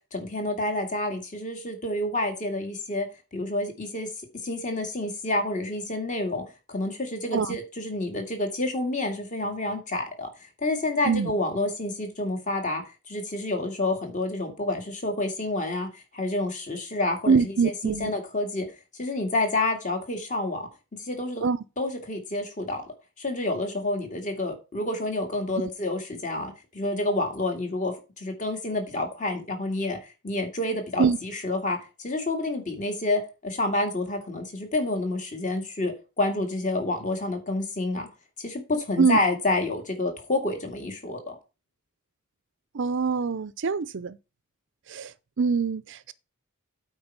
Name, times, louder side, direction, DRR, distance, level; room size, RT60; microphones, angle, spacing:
voice 1, 0.1-3.1 3.3-4.1 4.3-10.3 10.6-17.4 17.6-18.7 19.0-20.7 21.0-21.5 21.8-22.8 23.2-30.0 30.2-38.1 38.4-41.4, left 2 dB, 35° left, 2.1 m, -29 dB
voice 2, 17.3-18.1 21.4-21.6 31.0-31.2 39.0-39.2 42.7-44.2 44.9-46.1, right 5 dB, 60° right, 0.5 m, -24 dB
8.7 x 4.5 x 5.9 m
head